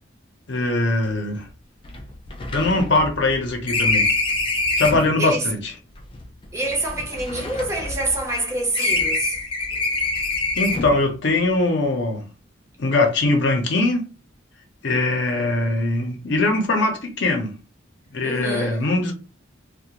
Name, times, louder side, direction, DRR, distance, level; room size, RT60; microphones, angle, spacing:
voice 1, 0.5-1.5 2.5-4.1 4.8-5.7 10.5-12.3 12.8-14.1 14.8-17.5 18.1-19.1, left 2 dB, 60° left, 0.6 m, -21 dB
sound 1, 1.0-1.1 1.4-1.5 1.8-5.1 6.0-8.4 8.7-11.1, left 2 dB, 25° left, 0.3 m, -25 dB
voice 2, 5.2-5.5 6.5-9.4 18.2-18.8, right 2 dB, 15° right, 0.6 m, -26 dB
2.4 x 2.1 x 2.8 m
head